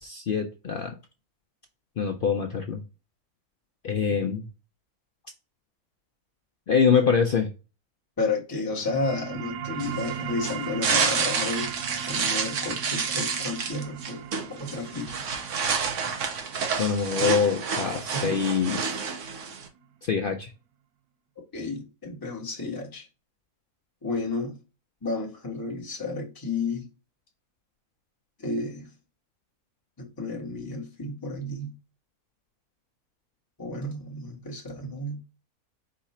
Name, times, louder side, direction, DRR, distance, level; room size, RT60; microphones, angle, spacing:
voice 1, 0.0-0.9 2.0-2.8 3.8-4.5 6.7-7.5 16.8-19.0 20.0-20.5, left 6 dB, 70° left, 0.5 m, -24 dB
voice 2, 8.2-11.7 12.1-14.2 14.5-15.2 18.1-18.3 21.5-23.1 24.0-24.6 25.0-26.9 28.4-28.9 30.0-31.7 33.6-35.2, left 3 dB, 15° left, 1.0 m, -32 dB
sound 1, 8.7-19.8, right 8 dB, 90° right, 1.1 m, -39 dB
sound 2, 9.8-19.7, right 5 dB, 60° right, 1.1 m, -29 dB
4.7 x 2.4 x 4.1 m
omnidirectional pair, 1.6 m